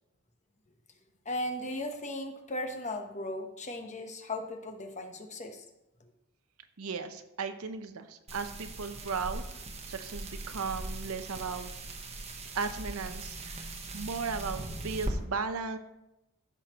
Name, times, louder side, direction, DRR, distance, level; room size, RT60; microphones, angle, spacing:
voice 1, 1.2-5.6, left 1 dB, 35° left, 5 dB, 1.0 m, -37 dB
voice 2, 6.8-9.4 9.9-11.7 12.5-13.7 13.9-15.8, right 5 dB, 75° right, 9 dB, 0.7 m, -36 dB
Bed noise, 8.3-15.1, right 2 dB, 30° right, 1.0 m, -40 dB
14.5 x 6.1 x 3.0 m, 0.91 s
head